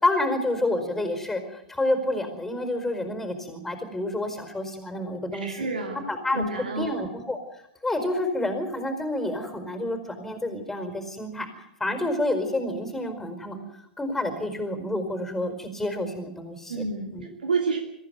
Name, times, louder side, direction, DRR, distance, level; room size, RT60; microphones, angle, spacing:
voice 1, 0.0-5.7 6.1-7.4 7.8-11.5 11.8-13.6 14.0-16.8 17.1-17.3, left 1 dB, 5° left, 7 dB, 4.8 m, -29 dB
voice 2, 5.4-6.0 6.3-7.0 16.7-17.1 17.4-17.8, right 3 dB, 75° right, 3 dB, 2.8 m, -28 dB
23.5 x 15.0 x 9.4 m, 0.80 s
figure-of-eight pair, 100°, 5 cm